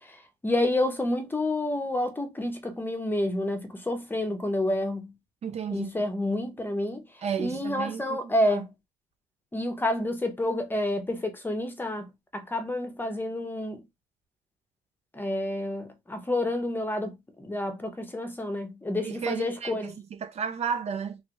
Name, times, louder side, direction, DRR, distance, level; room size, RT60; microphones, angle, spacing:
voice 1, 0.0-5.1 5.7-7.0 7.4-8.7 9.5-13.8 15.1-19.9, left 1 dB, 10° left, 0.7 m, -29 dB
voice 2, 5.4-6.0 7.2-8.2 8.4-8.6 19.0-19.9 20.2-21.2, right 7 dB, 40° right, 0.4 m, -32 dB
3.0 x 2.4 x 2.9 m
cardioid pair, 110°, 17 cm